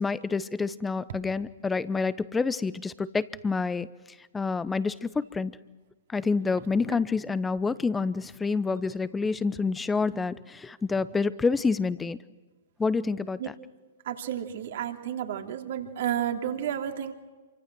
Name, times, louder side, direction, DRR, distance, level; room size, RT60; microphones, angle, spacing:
voice 1, 0.0-3.9 4.3-5.5 6.1-12.2 12.8-13.4, left 4 dB, 10° left, 16 dB, 0.9 m, -28 dB
voice 2, 14.0-17.1, right 10 dB, 60° right, 4 dB, 2.9 m, -31 dB
27.5 x 24.5 x 6.2 m, 1.3 s
hypercardioid pair, 125°, 0 cm